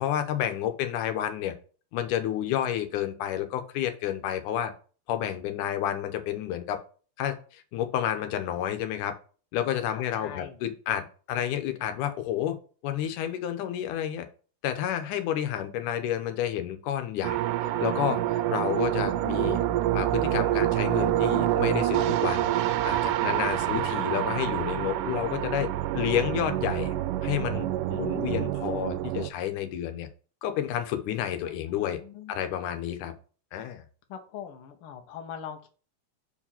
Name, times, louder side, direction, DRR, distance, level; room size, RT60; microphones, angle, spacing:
voice 1, 0.0-1.5 1.9-4.7 5.1-6.8 7.2-9.1 9.5-12.6 12.8-14.3 14.6-19.6 19.9-22.5 22.8-26.9 27.2-30.1 30.4-32.0 32.3-33.1 33.5-33.8, left 10 dB, 80° left, 2.3 m, -30 dB
voice 2, 9.9-10.6 19.0-20.1 23.6-24.1 31.2-32.3 34.1-35.7, left 8 dB, 65° left, 1.4 m, -44 dB
sound 1, 17.2-29.3, right 13 dB, 90° right, 2.2 m, -27 dB
5.1 x 4.9 x 5.7 m
omnidirectional pair, 3.6 m